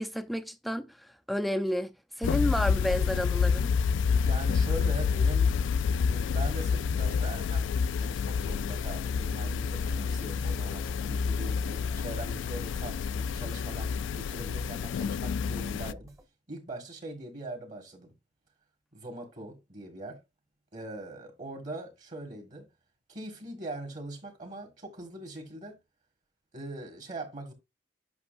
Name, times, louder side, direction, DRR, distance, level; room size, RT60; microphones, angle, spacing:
voice 1, 0.0-3.7, equal, ahead, 0.5 m, -31 dB
sound 1, 2.2-15.9, left 6 dB, 85° left, 0.3 m, -28 dB
voice 2, 4.2-5.5 6.0-7.7 7.9-16.1 16.5-18.1 18.9-20.2 20.7-22.7 23.1-25.8 26.5-27.5, right 2 dB, 40° right, 1.7 m, -41 dB
sound 2, 11.1-16.3, equal, 20° right, 1.0 m, -49 dB
8.1 x 6.0 x 2.5 m
head